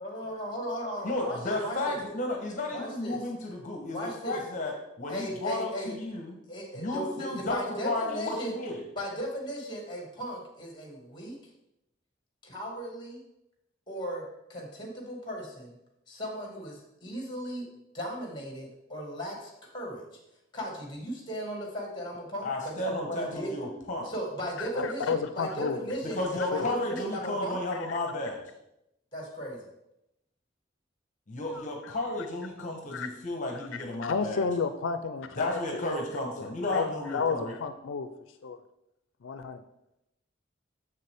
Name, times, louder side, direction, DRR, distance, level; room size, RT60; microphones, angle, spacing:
voice 1, 0.0-2.0 2.7-3.2 3.9-4.4 5.1-5.9 6.5-8.5 9.0-11.4 12.4-13.2 13.9-14.2 14.5-15.8 16.1-17.7 17.9-20.0 20.5-26.2 26.5-27.6 29.1-29.6, equal, 25° left, 0 dB, 1.9 m, -36 dB
voice 2, 1.0-6.4 6.7-8.8 22.4-24.1 26.0-28.4 31.3-34.4 35.4-37.5, left 2 dB, 40° left, 1 dB, 1.1 m, -33 dB
voice 3, 24.6-25.8 26.5-26.7 31.6-31.9 32.6-33.1 33.6-33.7 34.0-35.9 36.4-38.1 38.4-38.6 39.2-39.6, left 5 dB, 90° left, 10 dB, 0.4 m, -32 dB
7.0 x 6.7 x 3.5 m, 0.86 s
head